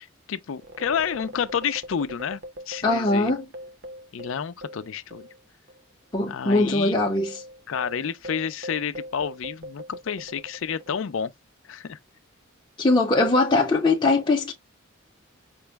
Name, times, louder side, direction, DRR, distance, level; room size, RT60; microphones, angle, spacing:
voice 1, 0.0-2.4 2.7-3.3 4.1-5.3 6.3-7.0 7.7-11.3 11.7-12.0, left 7 dB, 75° left, 0.4 m, -30 dB
sound 1, 0.6-5.4 5.7-5.8 6.4-11.2, equal, 50° right, 0.8 m, -41 dB
voice 2, 2.8-3.4 6.1-7.4 12.8-14.5, left 2 dB, 20° left, 0.6 m, -21 dB
5.2 x 2.0 x 3.3 m
head